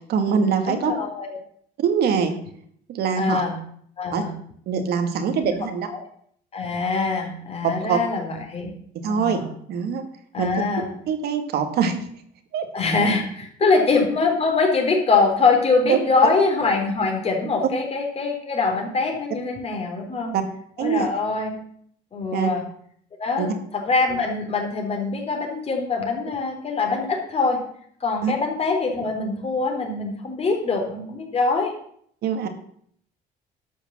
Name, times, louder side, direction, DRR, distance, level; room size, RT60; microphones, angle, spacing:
voice 1, 0.1-0.9 1.8-2.4 2.9-3.4 4.1-4.2 4.7-5.9 7.6-8.0 9.0-9.4 9.7-10.0 10.4-10.5 11.1-12.1 12.5-12.7 15.9-16.0 16.2-16.4 20.3-20.4 20.8-21.1 22.3-22.5 23.4-23.5 28.2-28.3 32.2-32.5, right 6 dB, 70° right, 7 dB, 2.0 m, -23 dB
voice 2, 0.6-1.4 3.2-3.6 4.0-4.3 5.3-5.5 5.8-6.0 6.5-8.7 9.1-9.5 10.3-10.9 12.7-20.3 20.8-21.6 22.1-22.6 23.2-23.5 23.7-27.6 28.0-31.8, left 4 dB, 35° left, 2 dB, 3.6 m, -23 dB
12.0 x 5.7 x 7.4 m, 0.65 s
cardioid pair, 110°, 17 cm